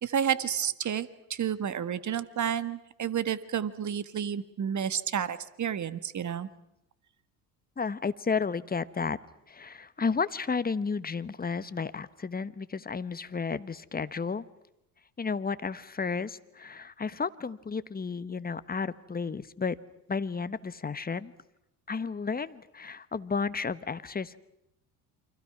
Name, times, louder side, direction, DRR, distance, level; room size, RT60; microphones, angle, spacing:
voice 1, 0.0-6.5, right 8 dB, 35° right, 15 dB, 1.6 m, -31 dB
voice 2, 7.8-9.2 9.5-14.4 15.2-19.7 20.1-21.3 21.9-24.4, left 5 dB, 20° left, 14 dB, 1.2 m, -32 dB
29.0 x 25.0 x 6.0 m, 0.85 s
hypercardioid pair, 65°, 47 cm